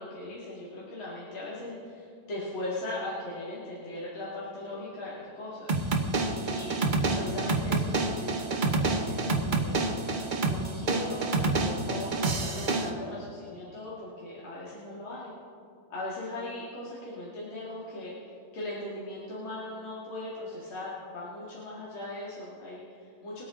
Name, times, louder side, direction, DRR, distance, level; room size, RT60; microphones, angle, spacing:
voice 1, 0.0-5.8 6.0-6.8 7.1-15.3 15.9-23.5, left 2 dB, 70° left, -7 dB, 3.0 m, -39 dB
sound 1, 5.7-12.9, right 3 dB, 45° right, 0.6 m, -28 dB
23.0 x 8.6 x 3.8 m, 2.4 s
omnidirectional pair, 2.3 m